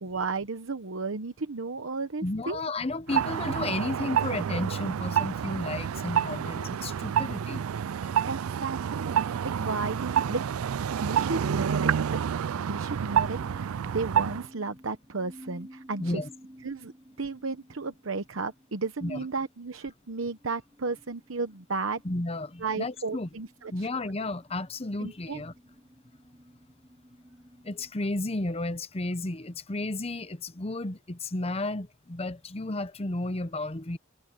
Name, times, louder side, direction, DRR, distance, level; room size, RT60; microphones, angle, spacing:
voice 1, 0.0-2.6 8.2-10.6 11.0-12.2 12.5-16.2 16.6-16.9 17.2-22.0 22.6-23.9 25.0-25.4, right 4 dB, 70° right, 1.0 m, -34 dB
voice 2, 2.2-7.6 16.0-16.3 19.0-19.2 22.0-23.3 23.7-25.5 27.6-34.0, left 2 dB, 30° left, 0.8 m, -33 dB
sound 1, 3.1-14.5, right 8 dB, 85° right, 0.4 m, -28 dB
sound 2, 13.0-27.9, equal, 15° right, 6.0 m, -54 dB
head